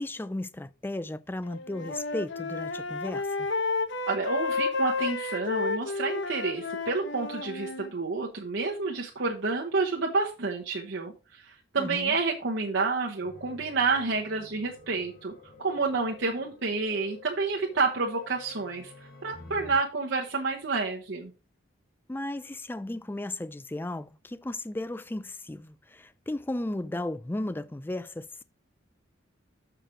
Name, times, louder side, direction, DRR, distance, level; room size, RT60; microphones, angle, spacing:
voice 1, 0.0-3.5 11.8-12.2 22.1-28.4, left 1 dB, 10° left, 0.3 m, -35 dB
Wind instrument woodwind instrument, 1.5-7.9, left 3 dB, 65° left, 0.8 m, -31 dB
voice 2, 4.1-15.3 15.6-18.9 19.2-21.3, right 4 dB, 70° right, 1.0 m, -29 dB
sound 1, 13.2-19.8, left 3 dB, 50° left, 2.0 m, -50 dB
6.6 x 6.0 x 4.8 m
head